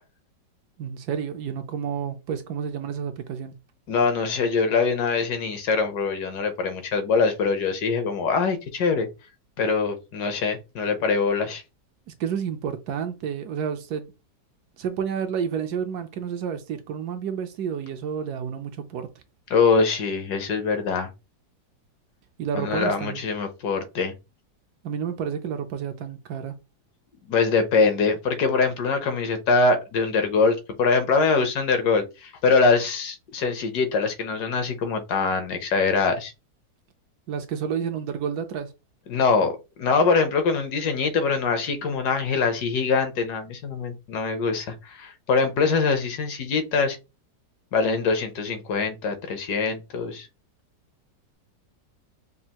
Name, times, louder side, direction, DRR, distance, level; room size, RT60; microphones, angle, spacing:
voice 1, 0.8-3.5 12.1-14.1 14.8-19.1 22.4-23.2 24.8-26.5 37.3-38.7, right 7 dB, 70° right, 1.0 m, -30 dB
voice 2, 3.9-9.1 9.6-11.6 19.5-21.1 22.5-24.1 27.3-36.3 39.1-39.5 39.8-47.0 47.7-50.3, left 4 dB, 70° left, 1.3 m, -23 dB
5.4 x 2.4 x 2.8 m
omnidirectional pair, 1.9 m